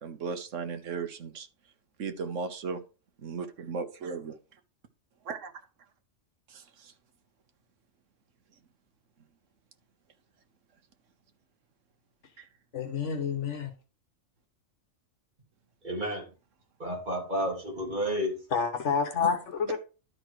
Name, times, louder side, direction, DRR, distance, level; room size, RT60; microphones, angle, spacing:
voice 1, 0.0-1.5 2.0-2.8 3.2-4.4 5.2-5.5 6.5-6.9 12.4-12.5, right 5 dB, 80° right, 1.3 m, -36 dB
voice 2, 12.7-13.7 18.5-19.8, left 6 dB, 75° left, 1.4 m, -28 dB
voice 3, 15.8-16.3 16.8-18.5, equal, 40° right, 3.3 m, -31 dB
11.5 x 4.5 x 4.7 m
omnidirectional pair, 1.3 m